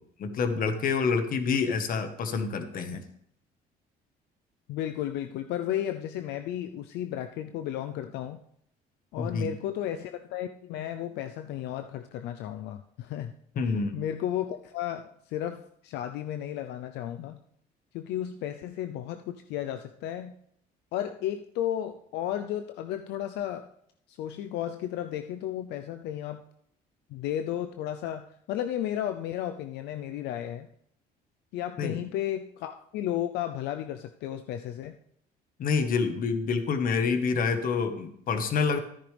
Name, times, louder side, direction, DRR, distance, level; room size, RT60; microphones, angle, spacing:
voice 1, 0.2-3.0 9.2-9.5 13.5-14.0 31.8-32.0 35.6-38.8, left 5 dB, 55° left, 8 dB, 1.5 m, -27 dB
voice 2, 4.7-8.4 9.1-13.3 13.9-17.4 17.9-20.3 20.9-23.7 24.1-26.4 27.1-30.7 31.5-35.0, left 11 dB, 85° left, 8 dB, 0.6 m, -33 dB
13.0 x 10.0 x 3.4 m, 0.70 s
cardioid pair, 110°, 17 cm